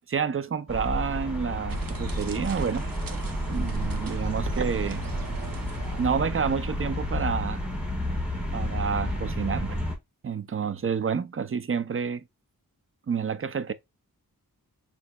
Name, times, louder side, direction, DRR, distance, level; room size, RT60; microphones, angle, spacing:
voice 1, 0.1-2.9 3.5-5.1 6.0-7.7 8.5-9.8 10.2-12.2 13.1-13.7, right 6 dB, 35° right, 0.4 m, -29 dB
sound 1, 0.7-9.9, left 1 dB, 5° right, 1.5 m, -31 dB
sound 2, 1.7-6.4, right 7 dB, 65° right, 0.7 m, -39 dB
6.1 x 2.9 x 2.2 m
wide cardioid pair, 80°, 37 cm